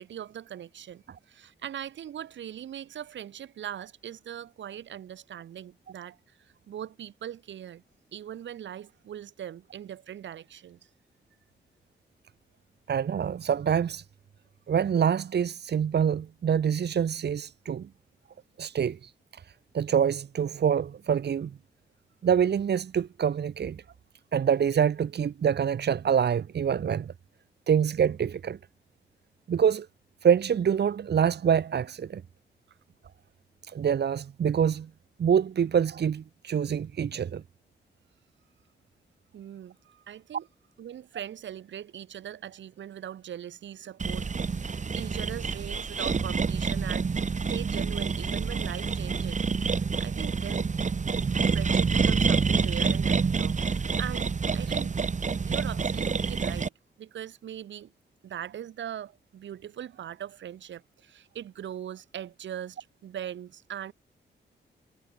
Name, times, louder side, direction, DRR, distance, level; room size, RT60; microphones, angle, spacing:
voice 1, 0.0-7.8 8.1-10.8 32.7-32.8 39.3-40.5 40.8-47.1 47.3-50.7 51.5-55.0 55.5-56.7 57.0-57.9 58.2-63.9, right 10 dB, 85° right, 5.0 m, -40 dB
voice 2, 12.9-14.0 14.7-17.9 18.6-19.4 19.7-21.5 22.2-23.8 24.3-27.1 27.7-28.6 29.5-29.9 30.2-32.2 33.6-34.9 35.2-37.4, right 8 dB, 65° right, 1.8 m, -26 dB
sound 1, 44.0-56.7, right 5 dB, 40° right, 1.9 m, -27 dB
cardioid pair, 70°, 19 cm